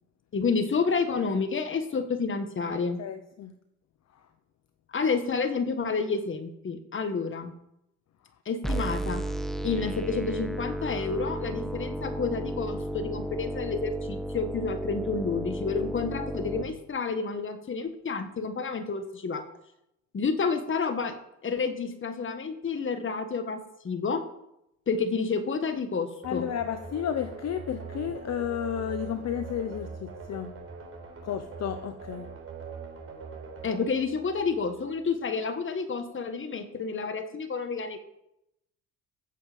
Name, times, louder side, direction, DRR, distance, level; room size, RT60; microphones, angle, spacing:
voice 1, 0.3-3.0 4.9-7.5 8.5-9.2 9.6-19.4 20.1-21.2 21.4-24.3 24.9-26.5 33.6-38.0, left 5 dB, 40° left, 8 dB, 1.8 m, -30 dB
voice 2, 2.7-3.6 4.1-4.2 26.2-30.6 31.2-32.3, left 9 dB, 60° left, 9 dB, 1.0 m, -33 dB
sound 1, 8.6-16.6, right 1 dB, ahead, 1.3 m, -33 dB
sound 2, 26.2-34.9, right 5 dB, 50° right, 4.1 m, -42 dB
15.5 x 7.5 x 5.3 m, 0.84 s
cardioid pair, 90°, 30 cm